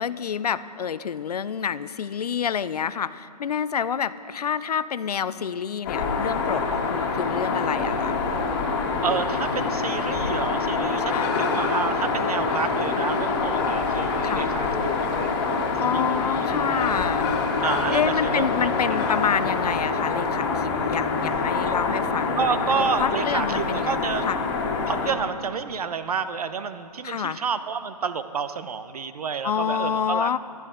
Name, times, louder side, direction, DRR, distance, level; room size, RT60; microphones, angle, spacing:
voice 1, 0.0-8.2 11.1-11.3 14.2-14.5 15.8-17.3 17.9-24.0 24.3-24.4 27.0-27.4 29.4-30.4, left 7 dB, 65° left, 15 dB, 0.6 m, -28 dB
sound 1, 5.9-25.1, left 4 dB, 30° left, 1.8 m, -25 dB
voice 2, 9.0-16.5 17.6-19.0 22.4-24.2 24.9-30.3, right 6 dB, 65° right, 12 dB, 0.9 m, -30 dB
20.0 x 12.5 x 3.8 m, 2.6 s
hypercardioid pair, 155°, 21 cm